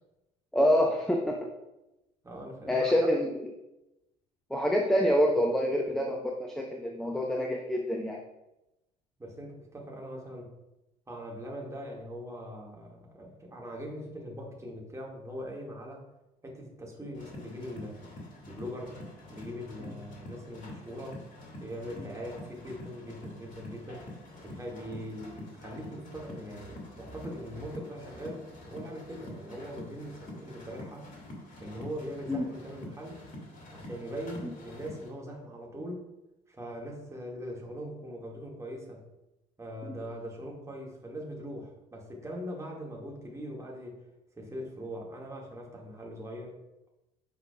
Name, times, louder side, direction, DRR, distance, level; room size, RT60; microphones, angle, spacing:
voice 1, 0.5-1.5 2.7-3.3 4.5-8.2 32.3-32.5 39.9-40.0, equal, ahead, 1 dB, 0.9 m, -26 dB
voice 2, 2.2-3.1 9.2-10.5 11.1-16.0 16.4-18.0 18.5-18.9 19.3-21.2 21.6-24.1 24.4-31.0 31.6-33.2 33.7-36.0 36.5-39.0 39.6-44.0 44.3-46.6, equal, 15° right, -2 dB, 2.2 m, -41 dB
sound 1, 17.1-35.1, left 1 dB, 40° left, 2.4 m, -46 dB
10.5 x 5.7 x 2.5 m, 0.93 s
figure-of-eight pair, 55°, 21 cm